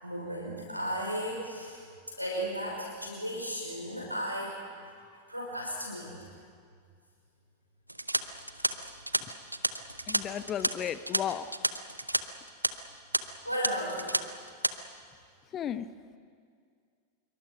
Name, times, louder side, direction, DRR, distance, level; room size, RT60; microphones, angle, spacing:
voice 1, 0.0-4.6 4.8-4.9 5.3-6.3 13.4-14.1, equal, 90° left, -3 dB, 5.8 m, -35 dB
sound 1, 7.9-12.2 12.5-12.7 13.1-13.2 13.6-14.2 14.5-14.7, right 1 dB, 85° right, 0.8 m, -30 dB
voice 2, 10.1-11.5 15.5-15.9, left 9 dB, 30° left, 13 dB, 1.0 m, -34 dB
26.5 x 23.5 x 5.9 m, 2.2 s
figure-of-eight pair, 90°, 0 cm